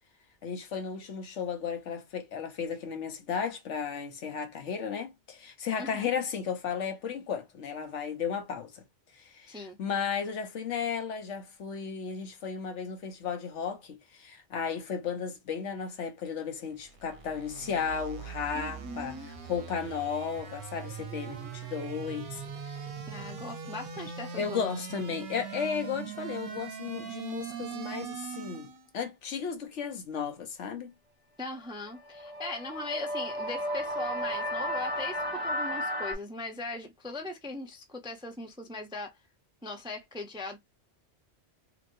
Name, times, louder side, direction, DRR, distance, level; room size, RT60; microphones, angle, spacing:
voice 1, 0.4-8.8 9.1-22.4 24.4-28.7 28.9-30.9, left 6 dB, 75° left, 1.1 m, -34 dB
voice 2, 5.8-6.1 9.5-9.8 18.5-19.3 23.1-24.7 31.4-39.1 39.6-40.6, left 2 dB, 5° right, 0.3 m, -39 dB
sound 1, 16.7-28.9, right 7 dB, 55° right, 0.8 m, -41 dB
sound 2, 31.9-36.1, equal, 20° left, 1.0 m, -33 dB
3.0 x 2.9 x 2.6 m
omnidirectional pair, 1.2 m